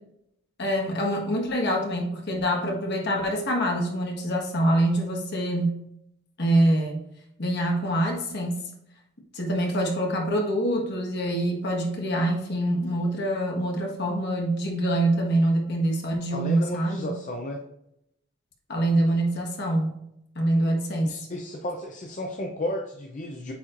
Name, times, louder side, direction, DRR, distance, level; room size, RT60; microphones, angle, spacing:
voice 1, 0.6-5.7 6.4-7.0 7.4-8.6 9.3-17.1 18.7-19.9 20.3-21.2, right 1 dB, 50° left, 0 dB, 1.5 m, -25 dB
voice 2, 16.3-17.6 21.1-23.5, left 1 dB, 35° left, 1 dB, 0.6 m, -33 dB
8.4 x 4.3 x 2.6 m, 0.78 s
head